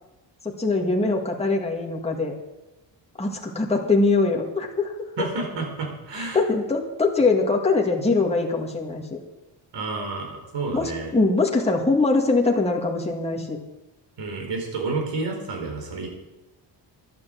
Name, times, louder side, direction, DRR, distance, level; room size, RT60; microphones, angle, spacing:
voice 1, 0.4-2.3 3.2-4.9 5.2-5.3 6.1-9.2 10.7-13.6, left 3 dB, 15° left, 0 dB, 2.0 m, -22 dB
voice 2, 5.2-6.4 9.7-11.1 14.2-16.1, right 3 dB, 70° right, 3 dB, 4.4 m, -30 dB
11.5 x 9.4 x 7.7 m, 1.0 s
cardioid pair, 120°, 45 cm